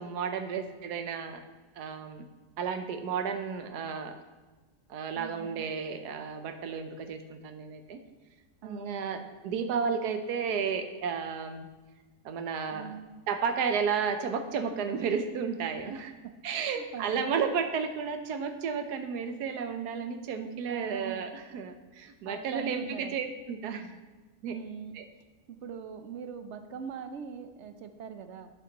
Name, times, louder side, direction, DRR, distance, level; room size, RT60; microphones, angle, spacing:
voice 1, 0.0-1.4 1.8-2.2 2.6-4.2 4.9-8.0 8.6-11.7 12.2-13.0 13.3-16.1 16.4-24.0 24.4-24.5 24.9-25.0, right 6 dB, 85° right, 7 dB, 1.3 m, -32 dB
voice 2, 5.2-5.7 8.6-9.3 12.7-13.2 16.2-16.3 16.6-17.4 20.7-21.3 22.3-23.2 24.5-25.0 25.5-28.5, right 7 dB, 60° right, 8 dB, 0.8 m, -42 dB
8.2 x 6.8 x 4.0 m, 1.3 s
omnidirectional pair, 1.6 m